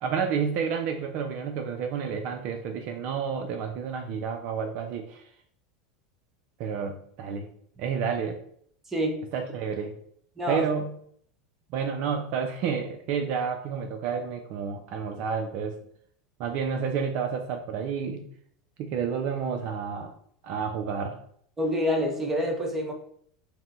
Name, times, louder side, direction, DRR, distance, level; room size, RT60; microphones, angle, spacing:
voice 1, 0.0-5.2 6.6-7.5 7.8-8.4 9.3-10.0 10.5-11.0 11.7-15.8 16.4-18.3 18.8-20.1 20.4-21.2, right 6 dB, 55° right, 5 dB, 0.3 m, -30 dB
voice 2, 10.4-10.7 21.6-22.9, equal, 15° right, 2 dB, 0.8 m, -27 dB
4.1 x 2.0 x 2.5 m, 0.64 s
hypercardioid pair, 90°, 2 cm